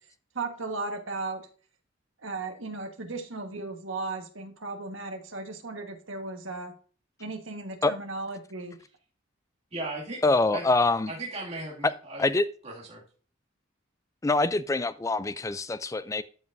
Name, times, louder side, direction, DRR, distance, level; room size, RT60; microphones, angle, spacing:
voice 1, 0.3-1.4 2.2-6.7 7.2-8.8, right 3 dB, 75° right, 1.4 m, -36 dB
voice 2, 9.7-10.7 11.1-12.2 12.6-13.0, right 2 dB, 30° right, 2.2 m, -37 dB
voice 3, 10.2-11.1 12.2-12.4 14.2-16.2, left 3 dB, 15° left, 0.4 m, -25 dB
12.0 x 5.5 x 2.6 m
head